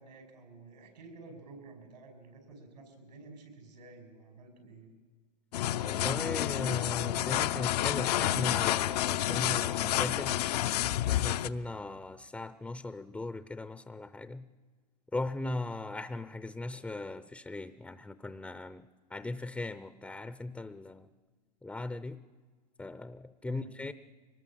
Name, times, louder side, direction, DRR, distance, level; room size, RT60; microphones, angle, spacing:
voice 1, 0.0-4.9 23.4-23.7, right 3 dB, 90° right, 5 dB, 5.9 m, -51 dB
sound 1, 5.5-11.5, left 13 dB, 70° left, 0.7 m, -29 dB
voice 2, 5.8-10.4 11.0-14.5 15.1-21.1 21.6-22.2 22.8-23.9, left 2 dB, 5° left, 13 dB, 0.6 m, -38 dB
23.5 x 19.5 x 7.5 m, 1.5 s
hypercardioid pair, 115°, 21 cm